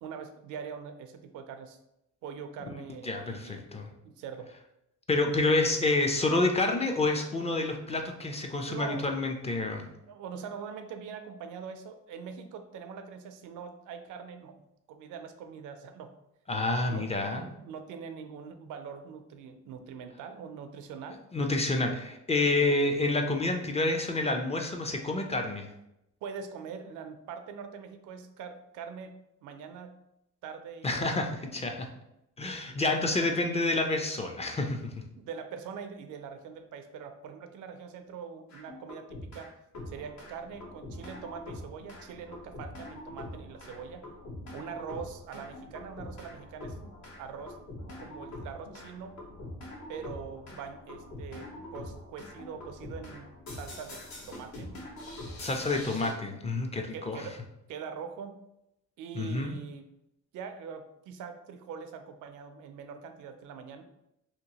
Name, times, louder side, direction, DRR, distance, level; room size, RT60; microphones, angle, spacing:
voice 1, 0.0-1.8 2.2-3.6 4.0-4.5 8.7-9.1 10.1-14.6 14.9-16.1 16.9-21.2 22.5-22.7 26.2-30.0 30.4-31.1 35.2-39.5 39.9-44.0 44.5-46.8 47.1-47.6 48.0-49.1 49.9-54.7 55.7-56.0 56.9-57.4 57.7-58.4 59.0-59.9 60.3-63.8, right 6 dB, 80° right, 7 dB, 0.5 m, -43 dB
voice 2, 3.0-3.9 5.1-9.9 16.5-17.5 21.3-25.7 30.8-31.9 32.4-34.8 55.4-57.3 59.2-59.6, left 2 dB, 20° left, 3 dB, 0.4 m, -28 dB
sound 1, 38.5-39.5 39.7-56.1, left 1 dB, 65° left, 1.0 m, -44 dB
2.8 x 2.5 x 2.8 m, 0.84 s
cardioid pair, 90°, 30 cm